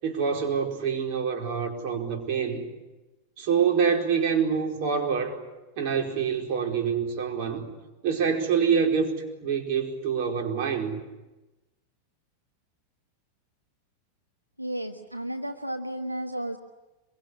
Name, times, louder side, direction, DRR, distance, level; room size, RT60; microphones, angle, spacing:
voice 1, 0.0-2.7 3.4-5.4 5.8-7.7 8.0-11.0, right 6 dB, 45° right, 2 dB, 4.7 m, -26 dB
voice 2, 14.6-16.6, right 1 dB, 90° right, 5 dB, 1.2 m, -33 dB
25.0 x 23.5 x 9.8 m, 1.1 s
figure-of-eight pair, 90°, 0 cm